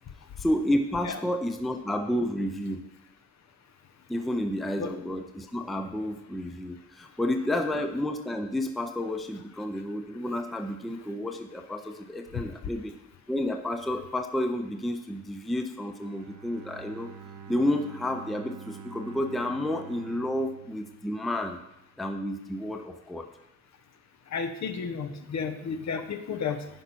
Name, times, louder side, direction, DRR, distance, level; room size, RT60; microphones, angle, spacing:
voice 1, 0.4-2.8 4.1-12.9 13.3-17.1 17.5-21.6 22.0-23.3, left 1 dB, ahead, 6 dB, 0.4 m, -30 dB
voice 2, 12.3-12.7 24.3-26.7, left 6 dB, 60° left, 8 dB, 0.9 m, -33 dB
Bowed string instrument, 16.0-21.9, right 7 dB, 75° right, 0.7 m, -47 dB
10.0 x 5.5 x 4.4 m, 0.88 s
wide cardioid pair, 180°, 31 cm